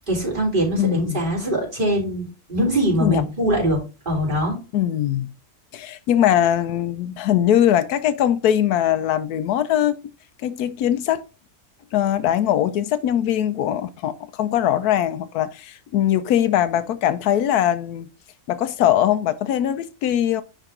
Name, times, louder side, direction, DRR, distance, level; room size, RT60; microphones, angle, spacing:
voice 1, 0.1-3.8 4.1-4.6, right 1 dB, 30° right, 3.7 m, -22 dB
voice 2, 0.8-1.2 3.0-3.2 4.7-5.3 5.7-10.0 10.4-11.3 11.9-18.1 18.5-20.4, left 11 dB, 85° left, 1.1 m, -21 dB
10.0 x 3.8 x 3.7 m
omnidirectional pair, 1.6 m